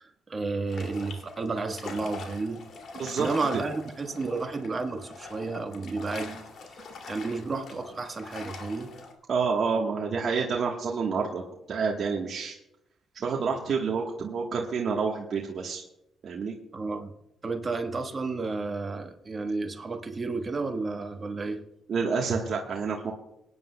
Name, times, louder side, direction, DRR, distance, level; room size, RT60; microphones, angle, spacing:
voice 1, 0.0-2.6 2.9-6.4 7.1-8.9 16.7-17.1 17.4-21.6, right 3 dB, 30° right, 5 dB, 1.4 m, -32 dB
sound 1, 0.7-9.1, left 4 dB, 65° left, 2.6 m, -43 dB
voice 2, 2.9-3.3 3.5-3.6 9.3-11.4 11.7-12.5 13.1-15.8 16.2-16.5 21.9-23.1, right 5 dB, 55° right, -1 dB, 1.3 m, -28 dB
25.5 x 9.8 x 2.3 m, 0.86 s
cardioid pair, 90°, 0 cm